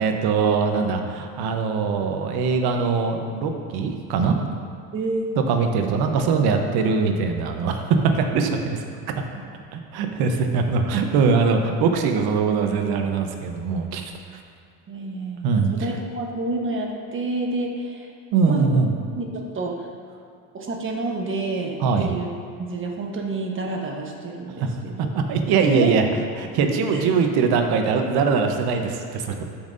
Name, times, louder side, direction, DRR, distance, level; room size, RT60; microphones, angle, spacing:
voice 1, 0.0-4.4 5.5-8.8 9.7-14.0 14.3-14.4 15.4-15.9 18.3-18.9 21.8-22.1 24.6-24.7 25.0-26.0 26.4-29.4, right 5 dB, 50° right, 4 dB, 1.1 m, -22 dB
voice 2, 4.9-5.4 8.3-8.5 14.9-18.1 18.5-18.7 19.2-19.9 20.5-22.3 22.6-25.1 25.6-26.0 26.6-27.0, right 2 dB, 25° right, 1 dB, 1.2 m, -29 dB
13.0 x 5.6 x 2.7 m, 2.3 s
supercardioid pair, 105°, 47 cm